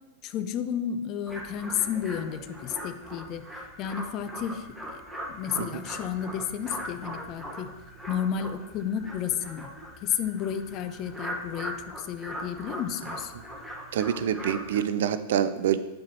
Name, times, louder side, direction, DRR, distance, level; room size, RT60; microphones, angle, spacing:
voice 1, 0.2-3.5 3.8-5.0 5.3-7.7 8.1-9.7 10.0-13.3, left 8 dB, 35° left, 10 dB, 0.5 m, -32 dB
sound 1, 1.3-14.8, equal, 5° right, 1.2 m, -40 dB
voice 2, 13.9-15.8, right 9 dB, 55° right, 13 dB, 0.3 m, -26 dB
8.3 x 4.6 x 2.9 m, 1.0 s
figure-of-eight pair, 95°, 0 cm